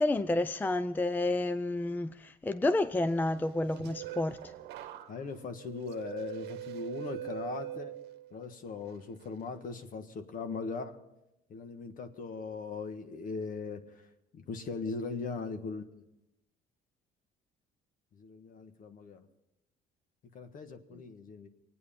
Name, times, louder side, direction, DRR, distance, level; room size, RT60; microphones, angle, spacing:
voice 1, 0.0-4.5, left 2 dB, 10° left, 0.4 m, -30 dB
sound 1, 3.4-8.4 8.9-9.3, right 12 dB, 80° right, 1.0 m, -43 dB
voice 2, 4.8-7.9 8.3-11.0 11.5-13.8 14.3-16.0 18.1-19.2 20.3-21.5, left 4 dB, 55° left, 1.6 m, -39 dB
24.0 x 9.6 x 5.3 m
cardioid pair, 110°, 17 cm